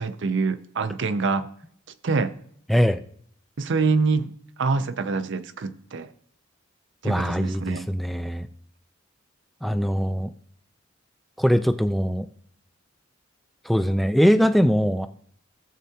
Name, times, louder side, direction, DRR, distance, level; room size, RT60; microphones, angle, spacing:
voice 1, 0.0-1.5 2.0-2.3 3.6-4.3 4.6-6.1 7.0-7.9, right 4 dB, 60° right, 0.5 m, -25 dB
voice 2, 2.7-3.0 7.0-8.5 9.6-10.3 11.4-12.3 13.7-15.1, equal, ahead, 0.3 m, -21 dB
16.0 x 7.4 x 2.8 m
head